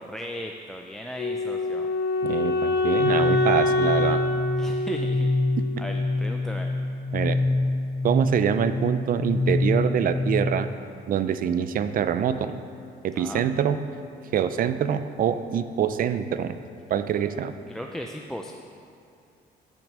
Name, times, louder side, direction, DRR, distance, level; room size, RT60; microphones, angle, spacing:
voice 1, 0.0-1.8 4.6-5.3 5.8-6.7 13.1-13.4 17.7-18.5, equal, 5° left, 2 dB, 0.5 m, -36 dB
Wind instrument woodwind instrument, 1.2-6.2, left 2 dB, 70° left, 0.9 m, -25 dB
voice 2, 2.2-4.2 7.1-7.4 8.0-10.7 11.1-12.6 13.0-13.8 14.3-16.6 16.9-17.5, right 8 dB, 55° right, 11 dB, 0.5 m, -25 dB
sound 1, 3.0-10.6, left 2 dB, 90° right, 1.5 m, -26 dB
10.5 x 6.1 x 6.6 m, 2.4 s
cardioid pair, 130°, 17 cm